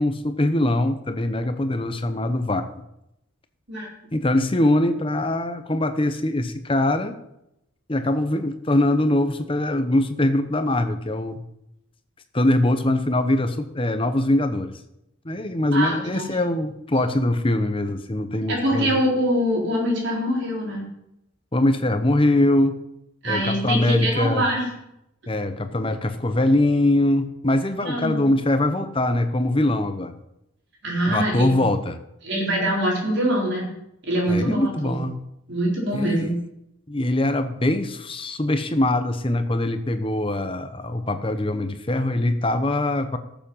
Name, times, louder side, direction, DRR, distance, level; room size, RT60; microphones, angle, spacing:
voice 1, 0.0-2.7 4.1-7.2 7.9-11.4 12.3-14.7 15.2-19.0 21.5-22.7 23.2-24.5 25.3-30.1 31.1-32.0 34.3-35.2 35.9-36.4 36.9-43.2, left 1 dB, 25° left, 9 dB, 0.9 m, -22 dB
voice 2, 3.7-4.1 15.7-16.3 18.5-20.8 23.2-24.7 27.8-28.3 30.8-31.6 32.2-33.7 34.0-35.0 35.5-36.3, equal, 55° right, -3 dB, 4.3 m, -24 dB
14.0 x 7.2 x 5.6 m, 0.83 s
head